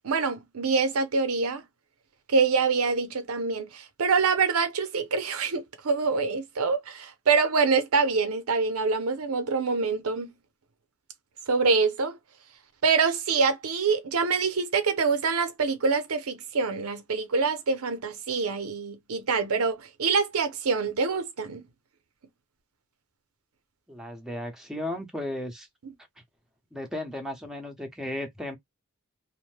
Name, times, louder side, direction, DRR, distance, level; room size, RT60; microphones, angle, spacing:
voice 1, 0.0-1.6 2.3-10.3 11.5-12.2 12.8-21.6, right 4 dB, 85° right, 0.7 m, -25 dB
voice 2, 23.9-25.7 26.7-28.6, left 1 dB, ahead, 0.8 m, -35 dB
2.6 x 2.1 x 3.2 m
head